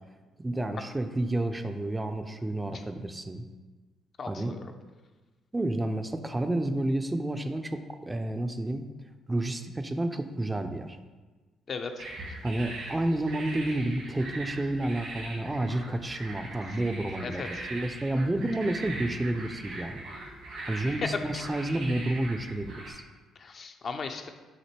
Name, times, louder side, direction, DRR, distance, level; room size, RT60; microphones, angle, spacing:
voice 1, 0.4-3.4 4.3-4.6 5.5-8.9 9.3-11.0 12.4-20.0 20.7-23.0, right 1 dB, 20° right, 8 dB, 0.3 m, -30 dB
voice 2, 4.2-4.6 11.7-12.0 17.2-17.6 21.3-21.4 23.4-24.3, left 4 dB, 50° left, 6 dB, 0.4 m, -37 dB
sound 1, 12.0-22.9, right 2 dB, 70° right, 1.1 m, -41 dB
5.8 x 2.6 x 2.9 m, 1.3 s
hypercardioid pair, 50°, 0 cm